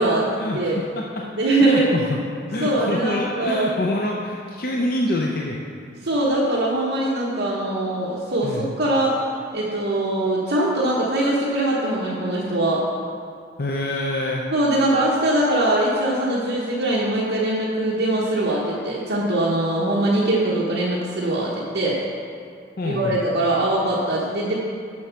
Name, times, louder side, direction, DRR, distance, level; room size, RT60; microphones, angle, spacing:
voice 1, 0.4-1.3 1.6-2.2 2.5-5.6 8.4-8.7 13.6-14.4 22.8-23.2, left 1 dB, 50° left, -1 dB, 0.6 m, -26 dB
voice 2, 1.2-2.0 2.6-3.7 6.0-9.2 9.5-12.9 14.5-22.0 22.8-24.5, right 1 dB, 65° right, -7 dB, 1.1 m, -22 dB
7.5 x 6.1 x 5.7 m, 2.3 s
head